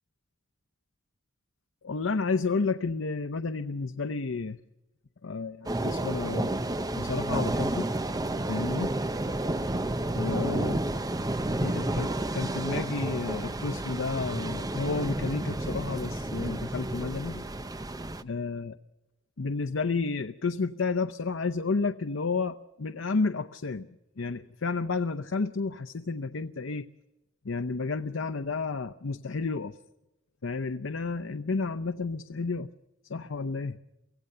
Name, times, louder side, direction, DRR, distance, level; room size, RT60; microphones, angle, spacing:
voice 1, 1.8-4.6 5.2-6.5 7.0-7.9 8.5-8.9 10.1-10.8 11.6-17.4 18.2-18.8 19.4-23.9 24.2-26.9 27.4-29.8 30.4-32.7 33.1-33.8, left 4 dB, 85° left, 9 dB, 0.7 m, -31 dB
sound 1, 5.7-18.2, right 1 dB, 20° right, 0.7 m, -31 dB
24.0 x 16.5 x 6.7 m, 0.94 s
head